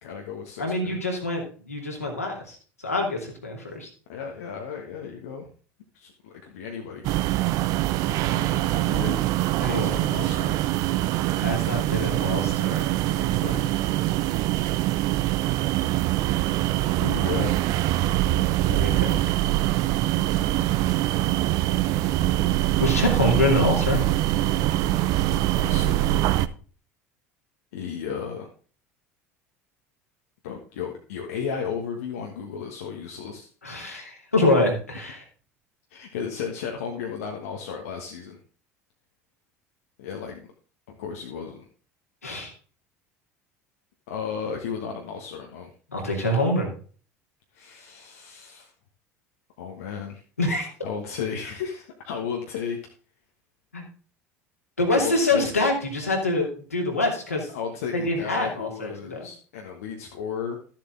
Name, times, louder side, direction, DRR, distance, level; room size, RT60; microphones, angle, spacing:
voice 1, 0.0-1.0 4.1-5.5 5.9-7.1 8.2-9.2 9.7-10.6 13.1-13.7 17.0-17.5 25.5-26.1 27.7-28.5 30.4-33.5 35.9-38.4 40.0-40.5 40.9-41.7 44.1-45.7 47.5-48.7 49.6-50.2 50.8-52.8 54.9-55.5 57.5-60.6, left 7 dB, 65° left, 2 dB, 1.4 m, -34 dB
voice 2, 0.6-2.6 2.8-3.9 9.6-10.0 11.3-12.7 18.7-19.2 22.8-24.0 33.6-35.2 42.2-42.5 45.9-46.7 50.4-50.7 53.7-53.8 54.8-57.5 57.9-59.2, left 2 dB, 85° left, 0 dB, 2.6 m, -25 dB
sound 1, 7.0-26.5, right 15 dB, 50° right, 0.6 m, -24 dB
13.0 x 7.4 x 3.8 m, 0.41 s
figure-of-eight pair, 65°, 8 cm